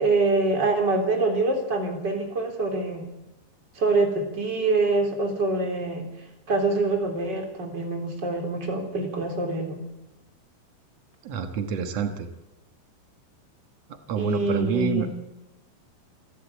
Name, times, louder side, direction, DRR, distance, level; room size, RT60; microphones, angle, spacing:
voice 1, 0.0-3.1 3.8-6.1 6.5-9.8 14.2-15.1, right 3 dB, 25° right, 2 dB, 3.5 m, -25 dB
voice 2, 11.2-12.3 14.1-15.1, right 7 dB, 85° right, 7 dB, 1.4 m, -27 dB
28.0 x 12.5 x 8.3 m, 0.99 s
omnidirectional pair, 5.2 m